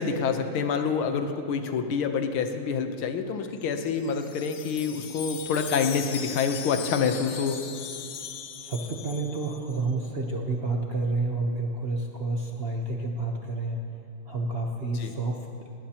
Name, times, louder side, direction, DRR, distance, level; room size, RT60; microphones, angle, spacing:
voice 1, 0.0-7.6 15.0-15.1, left 5 dB, 90° left, 7 dB, 1.8 m, -27 dB
Wind chime, 3.6-9.8, left 8 dB, 60° left, 0.9 m, -39 dB
voice 2, 8.6-14.0 14.2-15.7, right 2 dB, 45° right, 0 dB, 0.8 m, -30 dB
19.5 x 18.5 x 2.9 m, 2.6 s
omnidirectional pair, 2.2 m